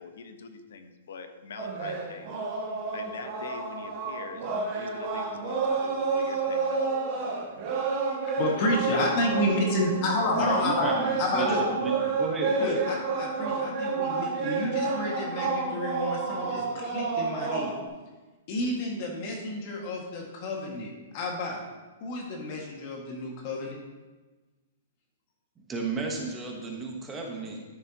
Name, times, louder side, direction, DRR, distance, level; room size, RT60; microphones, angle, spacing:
voice 1, 0.0-2.3 2.9-4.5 4.7-6.9, left 5 dB, 80° left, 7 dB, 1.1 m, -43 dB
sound 1, 1.6-17.9, right 4 dB, 35° right, 2.2 m, -30 dB
voice 2, 8.4-10.9 11.2-11.6 12.5-17.8 18.5-21.6 22.0-23.8, left 1 dB, 40° left, -1 dB, 1.8 m, -30 dB
voice 3, 10.3-12.8 25.6-27.6, right 3 dB, 15° right, 1 dB, 1.1 m, -33 dB
13.0 x 6.8 x 2.9 m, 1.2 s
hypercardioid pair, 160°, 0 cm